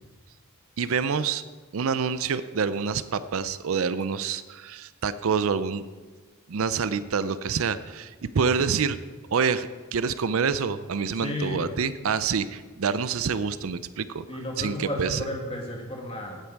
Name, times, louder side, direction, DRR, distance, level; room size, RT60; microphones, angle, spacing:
voice 1, 0.8-1.4 1.7-5.8 6.5-9.0 9.3-14.2 14.6-15.2, right 6 dB, 65° right, 14 dB, 0.5 m, -27 dB
voice 2, 11.1-11.7 14.3-16.4, left 1 dB, 25° left, 0 dB, 2.2 m, -33 dB
16.0 x 8.6 x 4.6 m, 1.4 s
head